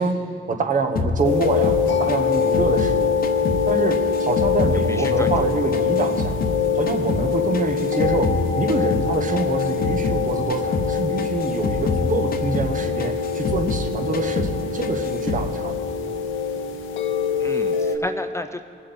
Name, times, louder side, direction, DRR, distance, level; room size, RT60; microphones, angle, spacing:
voice 1, 0.0-3.1 3.7-6.4 6.7-15.7, right 4 dB, 40° right, 6 dB, 1.1 m, -26 dB
sound 1, 1.0-3.7 3.9-6.6 6.9-10.2 10.5-10.9 11.2-13.9 14.1-14.6 14.8-15.5, left 4 dB, 50° left, 1.0 m, -27 dB
sound 2, 1.2-18.0, left 6 dB, 80° left, 0.8 m, -24 dB
voice 2, 4.9-5.5 6.0-6.3 17.4-18.6, left 2 dB, 15° left, 8 dB, 0.4 m, -32 dB
19.5 x 7.5 x 4.1 m, 2.4 s
cardioid pair, 90°, 20 cm